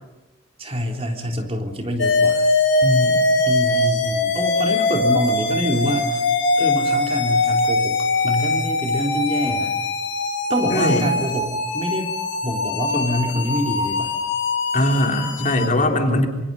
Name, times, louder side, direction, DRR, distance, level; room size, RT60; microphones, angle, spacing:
voice 1, 0.6-2.5 3.5-6.2 6.6-9.7 10.5-12.1 12.4-14.1 15.4-16.3, equal, 30° right, 2 dB, 3.7 m, -25 dB
sound 1, 2.0-15.7, left 2 dB, 75° left, 5.6 m, -22 dB
voice 2, 2.8-3.3 10.7-11.1 14.7-16.3, left 1 dB, 40° left, 2 dB, 3.6 m, -21 dB
27.0 x 27.0 x 5.6 m, 1.0 s
head